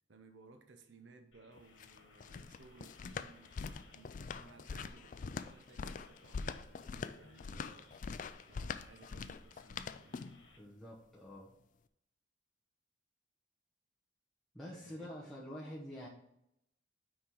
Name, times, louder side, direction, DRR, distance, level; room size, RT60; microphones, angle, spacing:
voice 1, 0.1-3.6 3.9-8.0 8.5-10.3 14.7-15.1, right 3 dB, 75° right, 7 dB, 0.7 m, -60 dB
sound 1, 1.3-10.6, left 2 dB, 70° left, 1.5 m, -63 dB
sound 2, 1.6-10.5, left 5 dB, 45° left, 0.3 m, -43 dB
voice 2, 10.5-11.5 14.5-16.1, equal, ahead, -6 dB, 0.9 m, -47 dB
5.9 x 4.3 x 4.7 m, 0.80 s
head